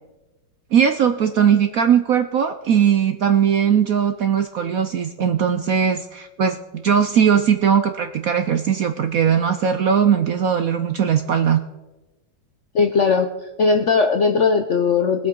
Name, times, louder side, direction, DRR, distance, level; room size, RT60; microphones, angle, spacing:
voice 1, 0.7-11.6, right 8 dB, 65° right, 8 dB, 0.8 m, -19 dB
voice 2, 12.7-15.3, left 5 dB, 65° left, 5 dB, 0.7 m, -18 dB
21.5 x 7.9 x 3.8 m, 1.1 s
omnidirectional pair, 2.1 m